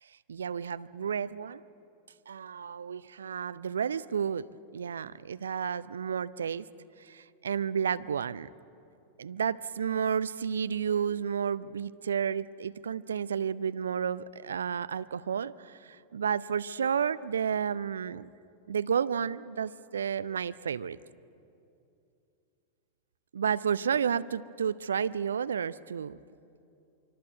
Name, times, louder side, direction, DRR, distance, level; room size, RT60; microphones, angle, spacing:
voice 1, 0.3-1.6 2.3-6.6 7.0-8.5 9.2-18.3 18.7-21.0 23.3-26.2, right 7 dB, 70° right, 15 dB, 0.6 m, -31 dB
25.0 x 24.5 x 8.0 m, 2.6 s
figure-of-eight pair, 90°, 0 cm